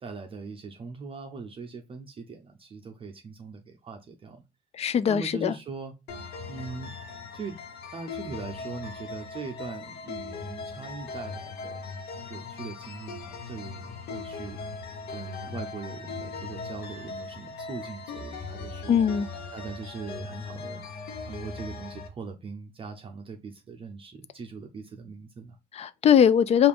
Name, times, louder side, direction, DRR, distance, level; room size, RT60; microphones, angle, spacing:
voice 1, 0.0-4.4 5.0-5.9 6.5-6.9 7.3-7.6 7.9-11.9 12.3-14.6 15.1-19.1 19.5-20.8 21.2-25.6, right 4 dB, 30° right, 0.6 m, -40 dB
voice 2, 4.8-5.5 18.9-19.3 25.7-26.7, left 8 dB, 40° left, 0.4 m, -21 dB
sound 1, 6.1-22.1, left 4 dB, 70° left, 0.9 m, -39 dB
4.8 x 2.5 x 3.5 m
cardioid pair, 110°, 17 cm